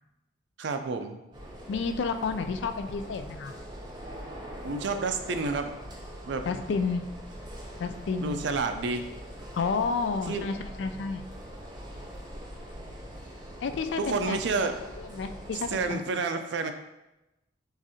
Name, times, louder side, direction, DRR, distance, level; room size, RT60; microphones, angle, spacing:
voice 1, 0.6-1.2 4.6-5.7 6.3-6.5 8.2-9.1 10.3-10.5 14.0-14.8 15.7-16.7, right 4 dB, 65° right, 7 dB, 0.4 m, -29 dB
sound 1, 1.3-15.9, equal, 20° right, 0.6 m, -43 dB
voice 2, 1.7-3.5 6.5-7.1 7.8-8.4 9.5-11.2 13.6-14.4 15.0-16.3, left 5 dB, 65° left, 8 dB, 0.3 m, -31 dB
6.1 x 2.5 x 2.7 m, 0.97 s
head